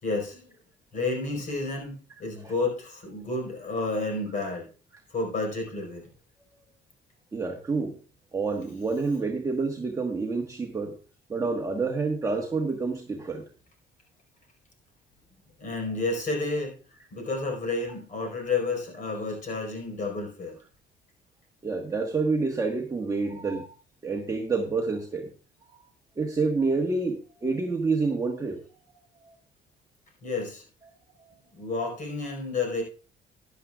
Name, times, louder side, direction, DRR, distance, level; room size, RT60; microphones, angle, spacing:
voice 1, 0.0-0.5 0.9-4.7 5.1-6.1 15.6-16.7 17.1-20.6 30.2-30.6 31.5-32.8, left 3 dB, 50° left, 2 dB, 4.5 m, -30 dB
voice 2, 7.3-8.0 8.3-10.9 11.3-13.4 21.6-23.7 24.0-25.3 26.2-28.6 29.2-29.3, right 4 dB, 20° right, 1 dB, 1.3 m, -28 dB
13.5 x 10.5 x 2.4 m, 0.37 s
cardioid pair, 110°, 17 cm